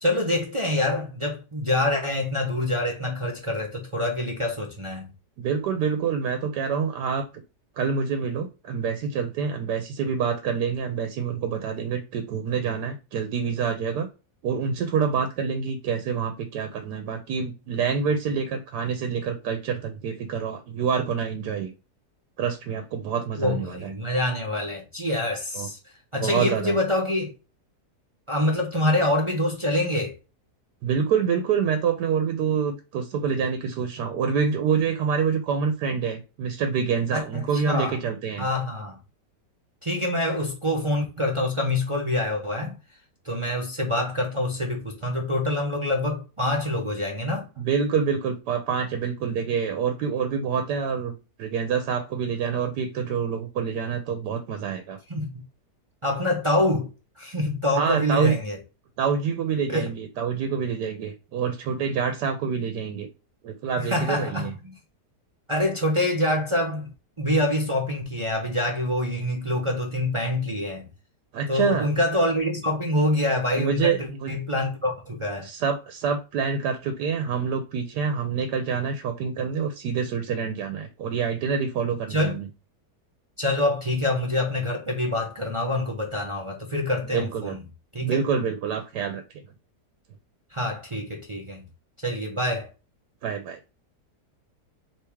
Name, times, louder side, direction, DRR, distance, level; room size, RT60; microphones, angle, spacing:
voice 1, 0.0-5.1 23.4-25.8 26.1-27.3 28.3-30.2 37.1-38.0 38.4-39.0 39.8-42.8 43.2-47.4 55.1-55.4 56.0-56.9 57.2-58.6 59.7-59.9 63.8-64.7 65.5-66.9 67.2-70.9 71.5-74.0 74.3-75.5 82.1-82.4 83.4-87.6 87.9-88.2 90.5-91.6 92.0-92.7, left 1 dB, 40° right, 0.4 m, -26 dB
voice 2, 5.4-7.2 7.8-14.1 14.4-21.7 22.4-23.9 25.5-25.7 26.1-26.8 30.8-38.4 47.6-55.0 57.7-58.3 59.0-63.1 63.4-64.5 71.3-71.9 73.6-74.3 75.4-82.5 87.1-87.6 88.0-89.2 93.2-93.6, right 6 dB, 80° right, 1.2 m, -26 dB
3.5 x 3.1 x 4.5 m
omnidirectional pair, 1.8 m